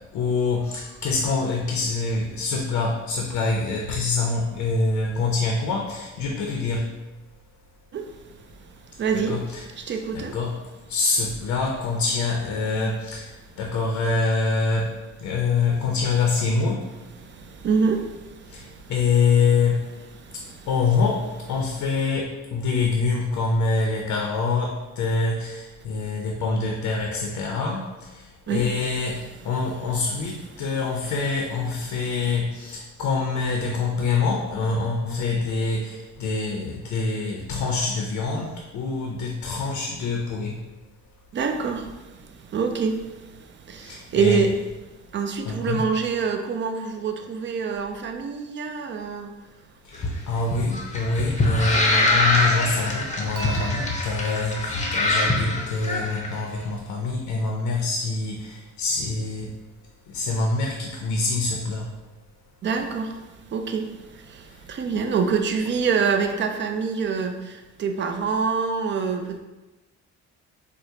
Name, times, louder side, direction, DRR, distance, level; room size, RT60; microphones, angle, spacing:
voice 1, 0.1-6.9 9.3-10.6 10.9-13.3 13.6-14.9 15.2-16.8 18.5-18.6 18.9-19.8 20.7-27.8 28.5-40.6 43.8-44.4 45.4-45.8 49.9-59.5 60.1-61.9, left 4 dB, 75° left, 0 dB, 0.5 m, -25 dB
voice 2, 7.9-9.4 9.8-10.4 17.2-18.9 20.2-20.7 28.5-28.7 41.3-44.5 45.1-49.3 62.6-69.4, right 5 dB, 40° right, 5 dB, 0.4 m, -26 dB
sound 1, 49.9-56.3, left 2 dB, 25° left, 0.6 m, -24 dB
Dishes pots and pans / Chink clink, 53.4-56.5, equal, 85° right, 0.6 m, -41 dB
4.5 x 2.0 x 2.7 m, 1.1 s
cardioid pair, 90°, 30 cm